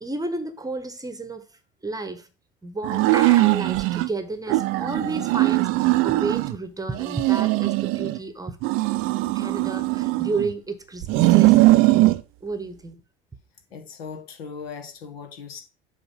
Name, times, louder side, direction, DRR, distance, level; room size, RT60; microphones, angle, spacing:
voice 1, 0.0-1.4 1.8-2.3 2.6-8.6 9.3-12.0 12.4-13.0, right 3 dB, 10° right, 1.0 m, -32 dB
sound 1, 2.8-4.1 4.5-6.6 6.9-8.2 8.6-10.5 11.0-12.2, right 19 dB, 45° right, 0.6 m, -20 dB
voice 2, 13.7-15.6, left 6 dB, 70° left, 1.6 m, -38 dB
7.2 x 4.0 x 5.4 m
figure-of-eight pair, 70°, 31 cm